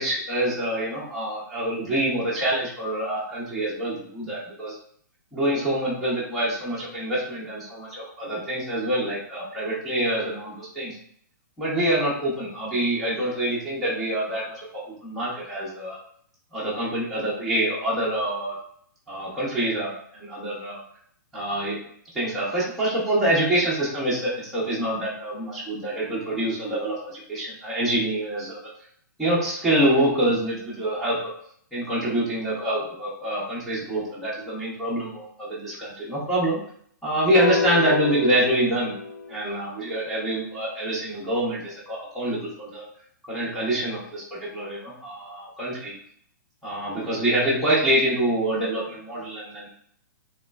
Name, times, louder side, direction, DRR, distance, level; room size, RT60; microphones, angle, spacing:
voice 1, 0.0-4.8 5.3-11.0 11.6-16.0 16.5-18.6 19.1-20.8 21.3-21.8 22.1-28.7 29.2-31.3 31.7-36.6 37.0-38.9 39.3-42.8 43.3-45.9 46.6-49.7, right 1 dB, ahead, -10 dB, 0.5 m, -26 dB
sound 1, 37.3-39.7, left 5 dB, 80° left, 0.4 m, -27 dB
3.1 x 3.0 x 2.2 m, 0.62 s
hypercardioid pair, 170°, 10 cm